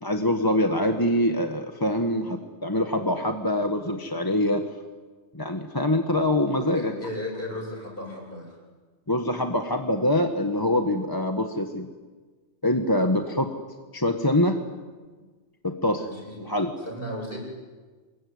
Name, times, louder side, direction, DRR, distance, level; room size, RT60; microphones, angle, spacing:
voice 1, 0.0-4.6 5.3-6.9 9.1-11.9 12.6-13.5 13.9-14.6 15.6-16.0 16.4-16.7, left 1 dB, 20° left, 5 dB, 1.5 m, -24 dB
voice 2, 6.6-8.6 15.9-16.5 16.8-17.4, left 1 dB, 50° left, 0 dB, 8.4 m, -35 dB
27.0 x 22.5 x 9.6 m, 1.4 s
omnidirectional pair, 1.2 m